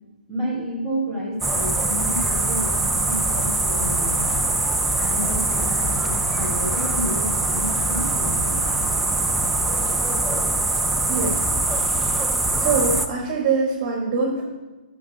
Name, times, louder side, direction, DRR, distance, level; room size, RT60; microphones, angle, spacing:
voice 1, 0.3-4.2 4.9-8.6, equal, 15° left, -7 dB, 3.3 m, -30 dB
sound 1, 1.4-13.1, right 2 dB, 5° right, 0.5 m, -23 dB
voice 2, 11.1-11.4 12.6-14.4, right 4 dB, 35° right, 0 dB, 1.6 m, -23 dB
11.0 x 6.4 x 4.7 m, 1.2 s
figure-of-eight pair, 130°, 5 cm